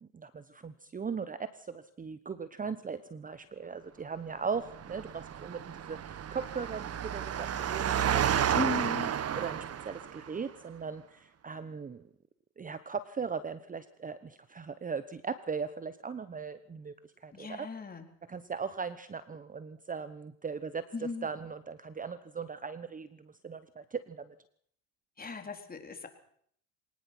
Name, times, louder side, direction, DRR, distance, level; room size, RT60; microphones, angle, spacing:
voice 1, 0.0-9.0 9.3-12.1 12.6-16.9 17.2-17.7 18.3-24.3, right 5 dB, 20° right, 13 dB, 1.1 m, -39 dB
Engine, 4.7-10.3, right 9 dB, 40° right, 1.5 m, -31 dB
voice 2, 8.5-9.1 17.3-18.0 20.9-21.3 25.2-26.1, left 4 dB, 25° left, 5 dB, 4.0 m, -37 dB
22.0 x 19.0 x 6.1 m, 0.64 s
supercardioid pair, 85°, 38 cm